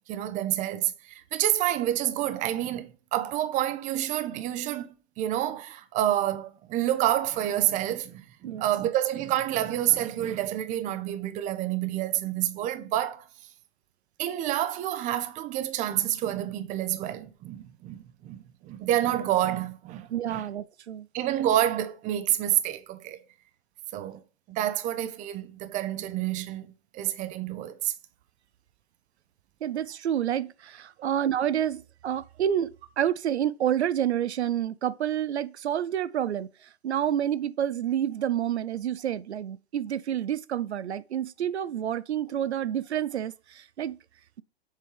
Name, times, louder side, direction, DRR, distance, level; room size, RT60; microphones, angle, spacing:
voice 1, 0.1-13.2 14.2-20.5 21.1-23.2 23.9-24.2 24.5-26.7 26.9-27.9, right 12 dB, 25° right, 0.6 m, -28 dB
voice 2, 20.1-21.1 29.6-44.0, right 10 dB, 85° right, 0.5 m, -29 dB
7.4 x 3.6 x 4.6 m
hypercardioid pair, 120°, 32 cm